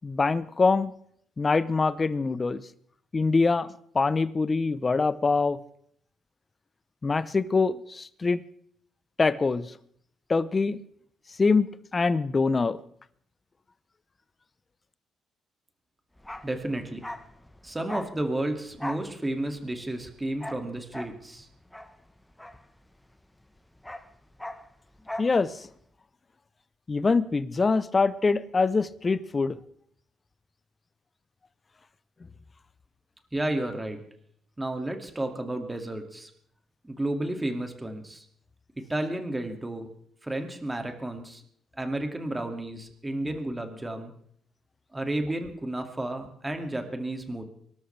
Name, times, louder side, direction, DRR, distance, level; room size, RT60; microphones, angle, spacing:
voice 1, 0.0-0.9 1.4-2.6 3.1-3.7 3.9-5.6 7.0-8.4 9.2-9.7 10.3-10.8 11.4-11.7 11.9-12.8 25.2-25.5 26.9-29.5, left 4 dB, 30° left, 0.8 m, -24 dB
Bark, 16.2-23.2 23.5-25.4 25.6-25.8, left 1 dB, 10° left, 1.1 m, -40 dB
voice 2, 16.4-17.0 17.6-21.5 33.3-34.0 34.6-36.3 36.8-38.2 38.9-39.9 40.2-41.4 41.8-44.1 44.9-47.4, right 1 dB, 15° right, 2.3 m, -32 dB
24.0 x 13.0 x 3.4 m
cardioid pair, 90°, 0 cm